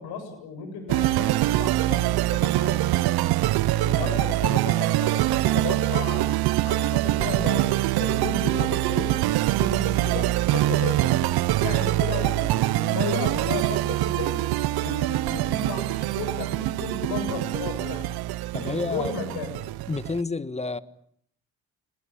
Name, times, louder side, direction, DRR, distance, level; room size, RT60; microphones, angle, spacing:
voice 1, 0.0-3.1 3.7-6.3 6.6-9.2 9.5-14.4 14.8-18.1 18.6-19.6, left 5 dB, 80° left, 9 dB, 7.9 m, -34 dB
sound 1, 0.9-20.2, right 16 dB, 75° right, 1.0 m, -24 dB
voice 2, 18.5-19.1 19.9-20.8, left 3 dB, 15° left, 14 dB, 1.7 m, -29 dB
29.0 x 20.5 x 8.9 m, 0.67 s
supercardioid pair, 65°, 38 cm